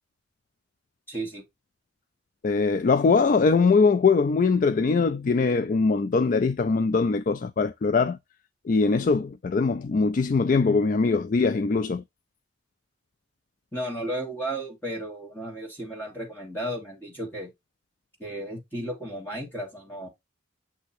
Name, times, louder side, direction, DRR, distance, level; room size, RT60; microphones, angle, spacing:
voice 1, 1.1-1.4 13.7-17.5 18.2-20.1, right 1 dB, 10° left, 1.6 m, -34 dB
voice 2, 2.4-8.2 8.7-12.0, left 4 dB, 40° left, 0.3 m, -22 dB
8.1 x 2.9 x 4.2 m
head